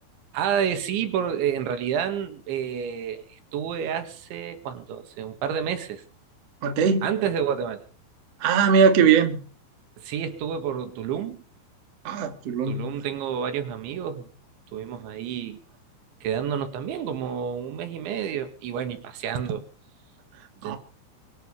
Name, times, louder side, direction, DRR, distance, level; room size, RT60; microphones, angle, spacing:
voice 1, 0.3-6.0 7.0-7.8 9.0-9.2 10.0-11.4 12.5-14.3 14.7-15.6 16.2-19.7 20.6-20.8, right 8 dB, 80° right, 4.3 m, -29 dB
voice 2, 6.6-7.1 8.4-9.4 12.0-12.9 20.6-20.8, right 6 dB, 45° right, 2.5 m, -20 dB
24.0 x 11.0 x 5.4 m
omnidirectional pair, 5.3 m